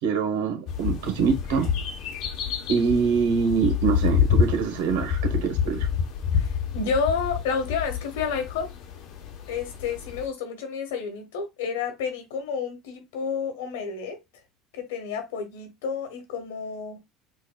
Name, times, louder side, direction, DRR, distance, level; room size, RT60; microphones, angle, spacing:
voice 1, 0.0-1.7 2.7-5.9, right 6 dB, 85° right, 1.2 m, -24 dB
sound 1, 0.7-10.3, left 7 dB, 65° left, 0.9 m, -28 dB
voice 2, 6.3-8.7 9.5-14.2 14.7-17.0, left 5 dB, 85° left, 1.2 m, -30 dB
4.7 x 2.6 x 2.3 m
supercardioid pair, 90°, 0 cm